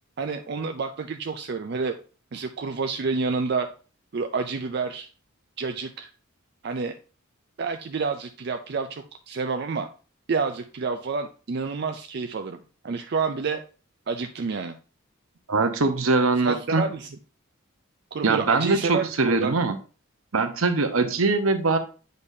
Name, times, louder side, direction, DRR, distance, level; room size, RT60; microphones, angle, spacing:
voice 1, 0.2-1.9 2.3-3.7 4.1-5.1 5.6-6.1 6.6-7.0 7.6-9.9 10.3-12.6 12.8-13.6 14.1-14.8 16.4-17.1 18.1-19.6, right 4 dB, 50° right, 7 dB, 0.4 m, -29 dB
voice 2, 15.5-16.8 18.2-19.7 20.3-21.8, right 3 dB, 85° right, 8 dB, 0.9 m, -22 dB
8.3 x 5.2 x 2.7 m, 0.36 s
head